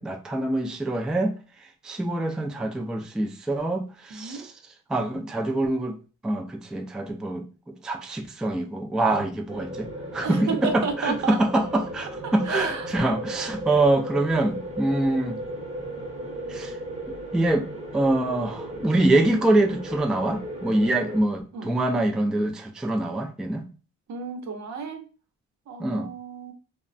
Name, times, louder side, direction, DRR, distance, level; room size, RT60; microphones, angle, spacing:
voice 1, 0.0-1.3 1.8-4.5 4.9-6.0 6.2-7.4 7.8-15.4 16.5-16.8 17.3-17.7 17.9-23.6 25.8-26.1, right 2 dB, ahead, 0.3 m, -25 dB
voice 2, 4.1-4.5 9.1-9.3 10.2-11.4 12.2-13.2 21.5-21.7 24.1-25.0 25.7-26.5, right 5 dB, 65° right, 0.8 m, -32 dB
sound 1, 9.5-21.2, right 1 dB, 20° right, 0.7 m, -36 dB
3.0 x 2.1 x 2.5 m
cardioid pair, 90°, 30 cm